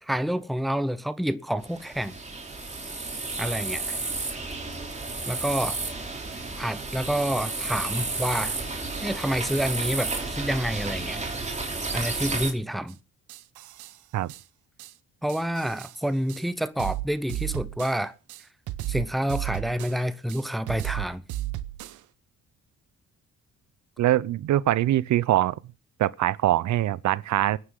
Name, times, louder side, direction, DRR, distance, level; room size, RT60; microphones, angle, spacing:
voice 1, 0.0-2.2 3.4-4.0 5.3-5.8 6.6-8.6 9.0-11.2 11.9-13.0 15.2-18.1 18.9-21.2, equal, ahead, 0.9 m, -28 dB
sound 1, 1.6-12.5, right 3 dB, 25° right, 3.2 m, -32 dB
sound 2, 12.9-13.0 13.3-14.0 14.3-14.4 14.8-14.9 15.3-16.0 16.3-16.4 16.8-18.0 18.3-20.0 20.3-22.0, right 14 dB, 85° right, 0.9 m, -34 dB
voice 2, 24.0-25.6 26.0-27.6, right 14 dB, 70° right, 0.7 m, -23 dB
25.0 x 9.8 x 3.8 m
cardioid pair, 90°, 30 cm